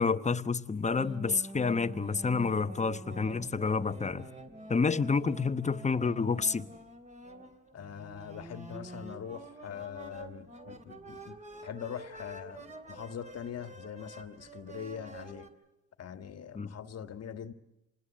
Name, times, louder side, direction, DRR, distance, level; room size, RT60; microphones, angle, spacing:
voice 1, 0.0-4.3 4.7-6.7 16.5-16.7, left 4 dB, 25° left, 1.0 m, -29 dB
sound 1, 1.0-15.5, right 2 dB, 25° right, 3.3 m, -47 dB
voice 2, 7.7-15.5 16.0-17.5, left 8 dB, 55° left, 1.6 m, -42 dB
26.5 x 20.0 x 7.4 m
cardioid pair, 90°, 30 cm